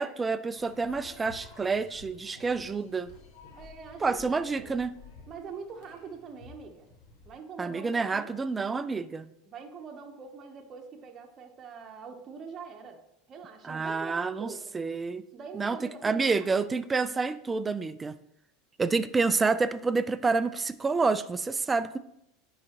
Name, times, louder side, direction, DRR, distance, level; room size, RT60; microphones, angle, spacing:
voice 1, 0.0-3.1 4.0-4.9 7.6-9.3 13.6-15.2 15.5-18.1 18.8-22.0, right 4 dB, 15° right, 13 dB, 0.3 m, -28 dB
sound 1, 0.5-7.3, left 3 dB, 70° left, 1.6 m, -52 dB
voice 2, 3.5-4.7 5.3-6.9 7.3-8.4 9.5-13.0 13.3-14.7 15.3-16.3, right 5 dB, 35° right, 2 dB, 0.8 m, -44 dB
9.6 x 3.9 x 2.9 m, 0.80 s
supercardioid pair, 110°, 0 cm